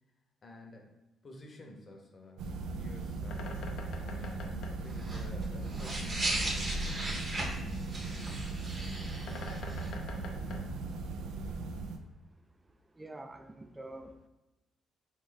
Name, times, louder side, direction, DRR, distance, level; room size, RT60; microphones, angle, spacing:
voice 1, 0.4-0.9 1.2-3.9 4.8-7.3, left 2 dB, 40° left, 1 dB, 0.9 m, -52 dB
sound 1, 2.4-12.0, right 3 dB, 90° right, 0.4 m, -38 dB
Bird, 2.5-11.6, left 3 dB, 75° left, 0.6 m, -49 dB
sound 2, 4.9-9.9, right 1 dB, 40° right, 1.0 m, -37 dB
voice 2, 12.6-14.3, right 2 dB, 15° right, 7 dB, 0.4 m, -48 dB
4.0 x 3.2 x 3.9 m, 1.0 s
cardioid pair, 90°, 0 cm